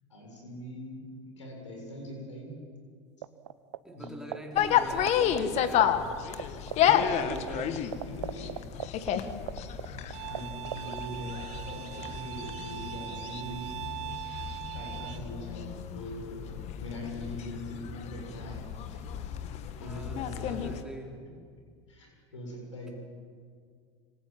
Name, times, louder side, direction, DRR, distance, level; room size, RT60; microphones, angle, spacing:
voice 1, 0.1-2.6 3.9-4.2 6.8-7.0 7.5-7.6 8.1-9.1 9.5-13.8 14.7-19.0 19.8-20.7 21.9-22.9, left 1 dB, 85° left, 2 dB, 7.3 m, -42 dB
sound 1, 3.2-3.8 4.0-6.1 6.4-6.5 6.7-10.4 10.6-11.0, right 11 dB, 75° right, 1.3 m, -34 dB
voice 2, 3.8-6.1 6.8-7.9 19.8-21.3, right 1 dB, 5° right, 0 dB, 4.9 m, -43 dB
sound 2, 4.6-20.8, left 9 dB, 45° left, 2.0 m, -31 dB
Bowed string instrument, 10.1-15.2, right 16 dB, 50° right, 1.2 m, -41 dB
27.5 x 26.5 x 7.7 m, 2.1 s
hypercardioid pair, 80°, 15 cm